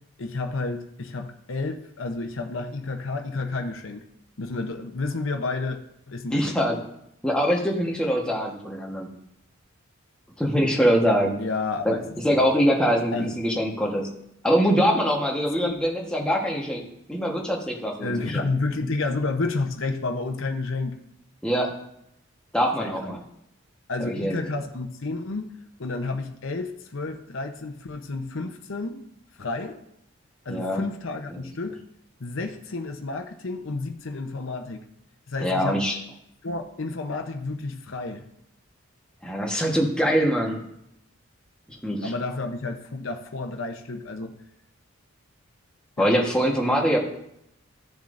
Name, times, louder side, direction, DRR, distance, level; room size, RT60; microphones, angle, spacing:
voice 1, 0.2-4.0 4.4-5.8 6.1-6.6 11.4-12.0 12.3-12.4 13.1-13.3 15.6-15.8 18.0-21.0 22.8-23.2 23.9-25.5 25.8-29.0 29.4-29.8 30.4-31.8 32.2-34.8 35.3-35.8 36.4-38.2 42.0-44.3 46.0-46.1, left 3 dB, 70° left, 5 dB, 0.8 m, -30 dB
voice 2, 6.3-6.8 7.2-9.1 10.4-11.4 11.8-11.9 12.2-14.1 14.4-16.8 17.1-18.5 21.4-21.7 22.5-23.2 24.0-24.4 30.5-30.8 35.4-36.0 39.2-40.6 41.7-42.1 46.0-47.0, equal, 5° left, -1 dB, 1.2 m, -23 dB
14.0 x 7.3 x 2.6 m, 0.77 s
head